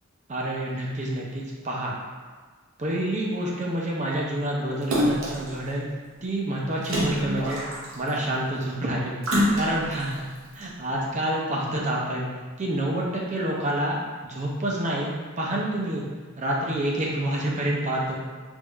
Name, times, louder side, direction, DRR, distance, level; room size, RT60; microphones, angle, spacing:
voice 1, 0.3-1.9 2.8-5.9 6.2-7.6 7.9-9.2 9.5-10.2 10.5-12.3 12.6-16.0 16.4-18.1, right 1 dB, 35° right, -3 dB, 0.6 m, -28 dB
Splash splatter, 4.9-5.5 6.8-8.1 9.2-10.0 10.6-10.7, equal, 70° right, 0.7 m, -25 dB
3.5 x 2.5 x 3.2 m, 1.5 s
head